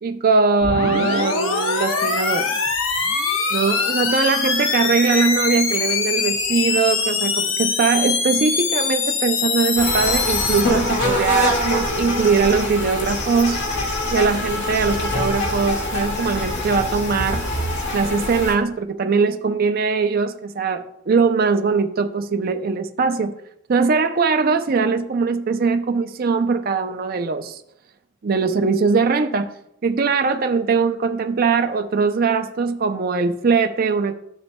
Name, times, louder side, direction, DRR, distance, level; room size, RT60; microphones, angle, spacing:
voice 1, 0.0-2.5 3.5-13.7 14.1-17.4 17.9-23.3 23.7-27.6 28.2-29.5 29.8-34.2, right 4 dB, 45° right, 0.5 m, -21 dB
sound 1, 0.6-10.6, left 5 dB, 80° left, 1.1 m, -23 dB
sound 2, 9.7-18.5, left 1 dB, 60° left, 1.9 m, -24 dB
13.0 x 6.9 x 2.2 m
head